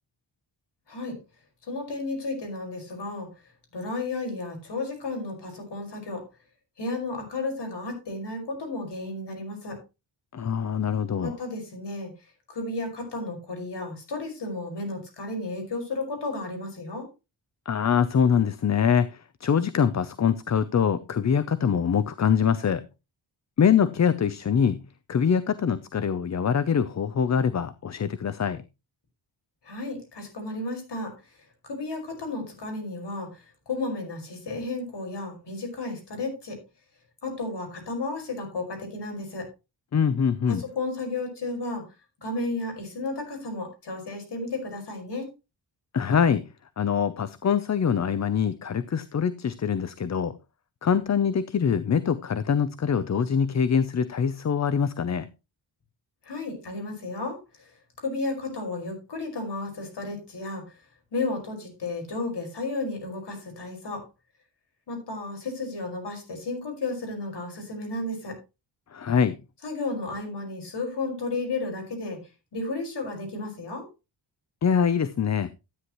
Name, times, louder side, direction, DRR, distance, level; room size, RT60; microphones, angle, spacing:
voice 1, 1.6-3.3 3.7-6.2 6.8-9.8 11.2-12.1 12.5-17.1 29.6-31.3 31.6-36.6 37.2-39.5 40.5-41.9 42.2-45.3 56.2-60.8 61.1-64.0 64.9-68.4 69.6-72.2 72.5-73.9, left 2 dB, 65° left, 5.2 m, -33 dB
voice 2, 10.3-11.3 17.7-22.8 23.6-24.8 25.1-28.6 39.9-40.6 45.9-46.4 46.8-50.4 50.8-55.3 68.9-69.4 74.6-75.5, left 7 dB, 40° left, 0.6 m, -24 dB
13.0 x 9.5 x 3.0 m
wide cardioid pair, 115°, 45 cm